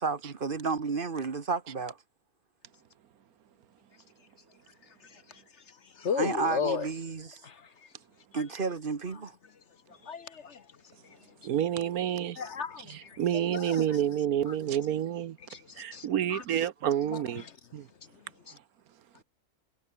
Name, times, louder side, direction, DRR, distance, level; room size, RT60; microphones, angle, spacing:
voice 1, 0.0-2.0 6.2-7.4 8.3-9.3, right 4 dB, 35° right, 1.4 m, -32 dB
voice 2, 5.0-5.4 5.7-6.9 7.4-7.9 8.3-8.4 10.0-11.2 12.4-13.2 13.5-14.0 15.5-16.4 17.1-17.5 18.5-18.6, left 6 dB, 55° left, 1.1 m, -36 dB
voice 3, 11.4-12.4 12.9-15.4 15.8-17.4 17.7-17.9, right 10 dB, 70° right, 1.3 m, -29 dB
omnidirectional pair, 1.6 m